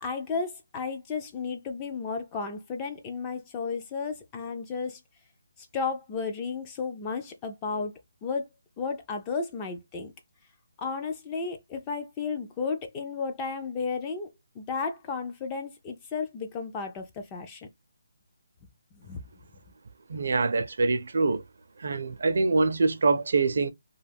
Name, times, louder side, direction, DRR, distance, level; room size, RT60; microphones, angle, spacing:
voice 1, 0.0-5.0 5.7-7.9 8.2-8.5 8.8-10.1 10.8-14.3 14.6-17.7 19.0-19.2, left 5 dB, 15° left, 0.3 m, -33 dB
voice 2, 20.1-21.4 21.8-23.7, right 3 dB, 55° right, 0.4 m, -24 dB
2.4 x 2.2 x 3.3 m
hypercardioid pair, 170°, 0 cm